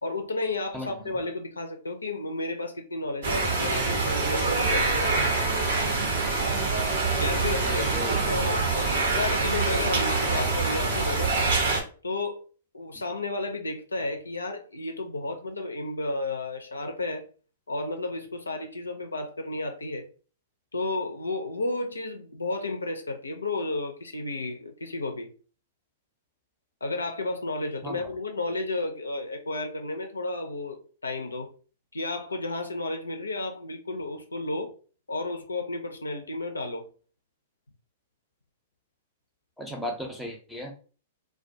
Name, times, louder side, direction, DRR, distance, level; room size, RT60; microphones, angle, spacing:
voice 1, 0.0-5.2 7.2-11.3 12.0-12.4 12.7-17.2 17.7-20.1 20.7-25.3 26.8-31.5 31.9-34.7 35.1-36.9, left 2 dB, 85° left, 0.4 m, -32 dB
voice 2, 0.7-1.2 7.6-8.2 27.8-28.0 39.6-40.7, equal, ahead, 0.6 m, -36 dB
sound 1, 3.2-11.8, right 3 dB, 65° right, 0.8 m, -25 dB
2.2 x 2.2 x 2.6 m
figure-of-eight pair, 110°, 0 cm